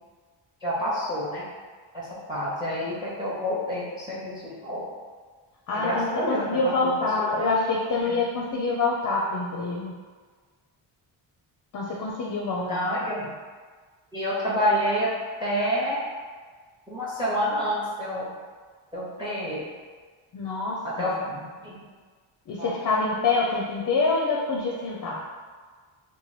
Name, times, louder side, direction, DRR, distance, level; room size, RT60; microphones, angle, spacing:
voice 1, 0.6-1.4 1.9-4.9 5.7-6.9 7.4-7.5 8.0-8.2 12.5-13.3 14.1-15.1 15.4-16.0 16.9-18.3 18.9-19.7 20.8-21.8 22.6-22.8, equal, 10° right, -7 dB, 0.6 m, -28 dB
voice 2, 5.7-10.0 11.7-12.8 20.3-21.1 22.5-25.2, left 3 dB, 45° left, -2 dB, 0.4 m, -26 dB
2.9 x 2.2 x 3.1 m, 1.5 s
cardioid pair, 105°, 48 cm